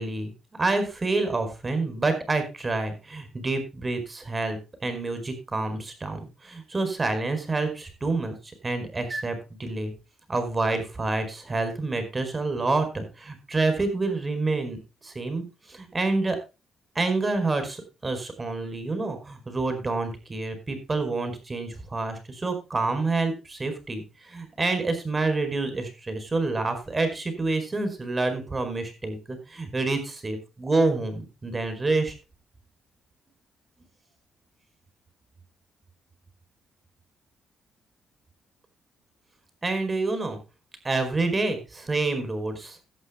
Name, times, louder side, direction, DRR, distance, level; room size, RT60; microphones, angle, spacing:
voice 1, 0.0-9.9 10.3-15.4 15.7-16.4 16.9-32.1 39.6-40.4 40.8-42.8, right 3 dB, 25° right, 8 dB, 4.8 m, -28 dB
17.0 x 11.5 x 2.2 m, 0.29 s
cardioid pair, 90°, 0 cm